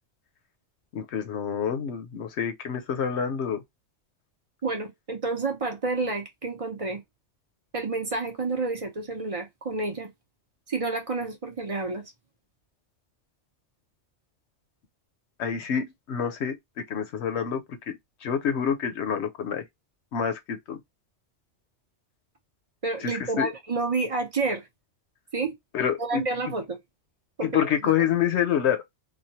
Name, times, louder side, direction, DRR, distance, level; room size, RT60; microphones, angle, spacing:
voice 1, 0.9-3.6 15.4-16.6 16.9-17.9 18.2-19.6 20.1-20.8 23.0-23.1 23.4-23.5 25.7-26.2 27.4-28.8, left 8 dB, 70° left, 0.9 m, -27 dB
voice 2, 4.6-7.0 7.7-10.1 10.7-12.0 22.8-24.6 25.3-25.5 26.0-26.8 27.4-28.2, right 3 dB, 35° right, 0.7 m, -29 dB
3.1 x 2.2 x 2.7 m
omnidirectional pair, 1.2 m